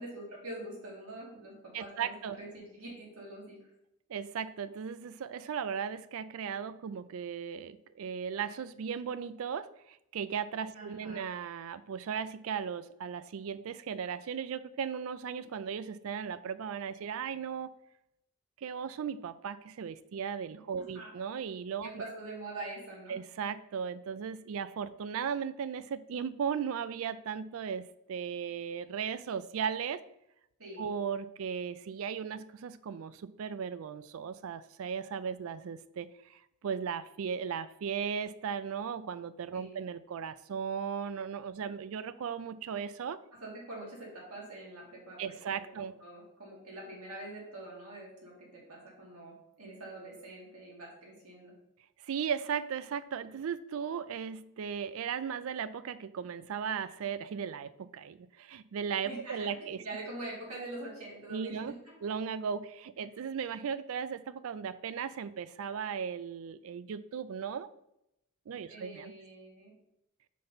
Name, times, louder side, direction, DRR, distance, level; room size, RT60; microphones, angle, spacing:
voice 1, 0.0-3.7 10.7-11.3 20.9-21.1 21.8-23.1 30.6-30.9 39.5-39.8 43.4-51.5 59.0-61.9 63.0-63.2 68.7-69.7, right 2 dB, 90° right, -3 dB, 2.5 m, -45 dB
voice 2, 1.7-2.4 4.1-17.7 18.6-22.0 23.1-27.8 28.1-30.0 30.8-43.2 45.2-45.9 52.0-59.8 61.3-61.7 62.0-67.7 68.5-69.1, right 7 dB, 75° right, 15 dB, 0.4 m, -37 dB
5.2 x 4.0 x 5.5 m, 0.82 s
head